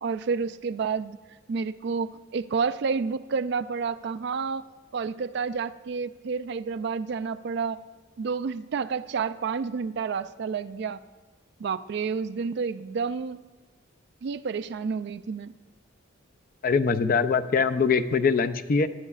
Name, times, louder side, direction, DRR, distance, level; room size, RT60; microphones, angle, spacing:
voice 1, 0.0-1.2 1.5-4.7 4.9-7.8 8.2-11.0 11.6-13.4 14.2-15.5, right 5 dB, 55° right, 15 dB, 0.3 m, -30 dB
voice 2, 16.6-18.9, left 5 dB, 45° left, 12 dB, 0.4 m, -23 dB
18.0 x 11.0 x 2.4 m, 1.3 s
head